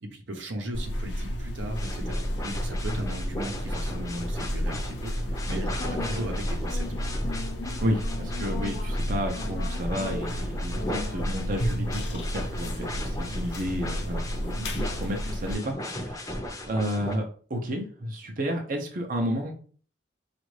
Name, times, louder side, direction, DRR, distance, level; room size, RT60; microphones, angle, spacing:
voice 1, 0.0-5.1 5.4-7.1, equal, 80° right, 4 dB, 0.8 m, -37 dB
sound 1, 0.7-15.5, equal, 65° left, 0.7 m, -31 dB
sound 2, 1.7-17.1, left 1 dB, 20° left, 0.6 m, -37 dB
voice 2, 7.8-19.5, equal, 45° right, 1 dB, 0.6 m, -32 dB
5.1 x 2.5 x 3.2 m, 0.43 s
head